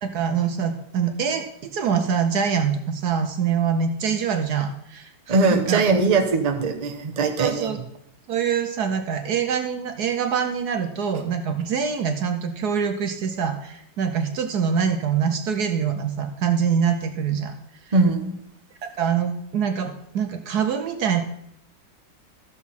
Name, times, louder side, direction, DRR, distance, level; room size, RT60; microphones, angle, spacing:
voice 1, 0.0-5.8 7.4-7.8 8.3-17.5 17.9-18.0 18.8-21.2, right 7 dB, 65° right, 6 dB, 1.2 m, -24 dB
voice 2, 5.3-7.7 17.9-18.3, right 3 dB, 30° right, 4 dB, 0.7 m, -21 dB
13.5 x 7.1 x 4.2 m, 0.77 s
omnidirectional pair, 2.1 m